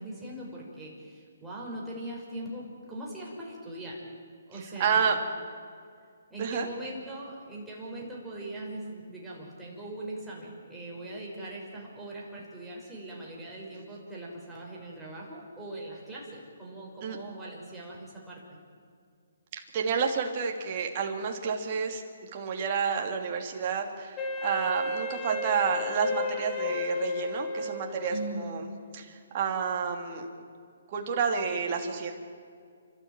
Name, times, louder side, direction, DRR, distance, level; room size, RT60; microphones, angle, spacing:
voice 1, 0.0-4.0 4.5-5.1 6.3-18.6 28.1-28.6, right 1 dB, 5° right, -5 dB, 5.9 m, -40 dB
voice 2, 4.8-5.2 6.4-6.7 17.0-17.2 19.7-22.0 22.3-30.3 30.9-32.1, right 6 dB, 35° right, 2 dB, 3.0 m, -30 dB
Wind instrument woodwind instrument, 24.2-28.4, left 2 dB, 20° left, 2.7 m, -33 dB
30.0 x 13.0 x 9.1 m, 2.2 s
hypercardioid pair, 155°, 0 cm